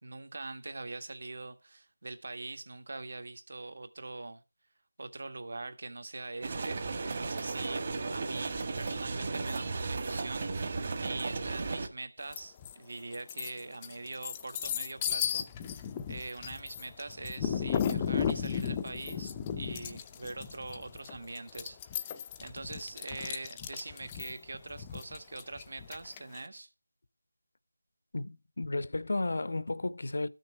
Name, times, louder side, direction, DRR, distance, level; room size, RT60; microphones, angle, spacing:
voice 1, 0.0-4.4 5.0-26.7, right 2 dB, 55° right, 1.7 m, -43 dB
sound 1, 6.4-11.9, right 3 dB, 35° right, 1.5 m, -35 dB
sound 2, 12.3-12.7 13.1-26.4, left 8 dB, 15° left, 0.5 m, -35 dB
voice 2, 28.1-30.3, left 2 dB, 65° left, 0.8 m, -33 dB
13.5 x 6.5 x 4.4 m
figure-of-eight pair, 170°, 0 cm